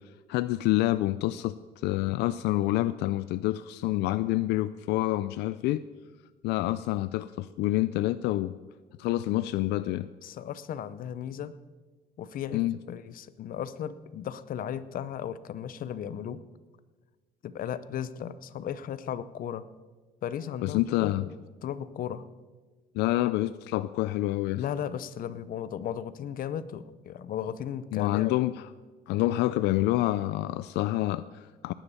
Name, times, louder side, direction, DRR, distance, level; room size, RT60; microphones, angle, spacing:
voice 1, 0.3-1.6 1.8-5.8 6.4-8.5 9.0-10.1 12.5-12.8 20.6-21.2 22.9-24.6 27.9-28.7 29.1-31.7, left 16 dB, 85° left, 15 dB, 0.4 m, -27 dB
voice 2, 10.2-11.5 12.2-16.4 17.4-19.7 20.2-21.3 21.6-22.3 24.5-28.3, left 9 dB, 55° left, 15 dB, 0.8 m, -36 dB
18.0 x 10.0 x 5.5 m, 1.3 s
cardioid pair, 110°, 17 cm